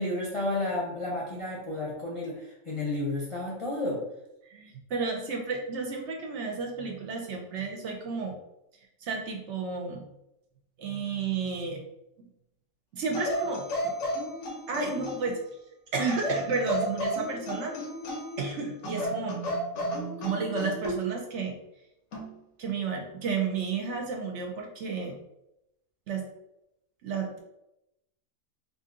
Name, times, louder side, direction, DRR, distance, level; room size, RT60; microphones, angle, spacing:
voice 1, 0.0-2.3 2.7-4.0, left 2 dB, 30° left, -5 dB, 0.7 m, -31 dB
voice 2, 4.5-8.4 9.0-10.0 10.8-11.8 12.2-12.3 12.9-13.9 14.7-15.4 15.9-17.8 18.4-19.4 20.2-21.6 22.6-25.2 26.1-26.3 27.0-27.4, right 4 dB, 65° right, 1 dB, 0.9 m, -32 dB
sound 1, 13.1-15.4 16.1-18.4 18.8-21.0 22.1-22.4, equal, 85° left, 1.2 m, -33 dB
2.8 x 2.7 x 3.7 m, 0.86 s
omnidirectional pair, 1.4 m